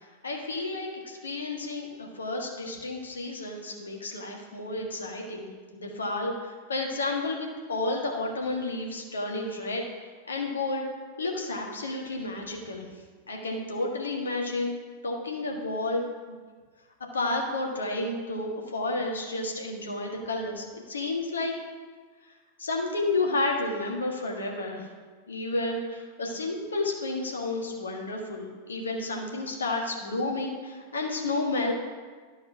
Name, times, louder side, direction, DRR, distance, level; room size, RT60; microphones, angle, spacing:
voice 1, 0.2-6.3 6.7-9.8 10.2-10.8 11.2-12.9 13.3-14.7 15.0-16.0 16.3-16.4 17.1-21.5 22.6-24.9 25.3-31.7, left 2 dB, 70° left, 0 dB, 1.6 m, -31 dB
12.5 x 4.2 x 5.8 m, 1.5 s
figure-of-eight pair, 90°, 0 cm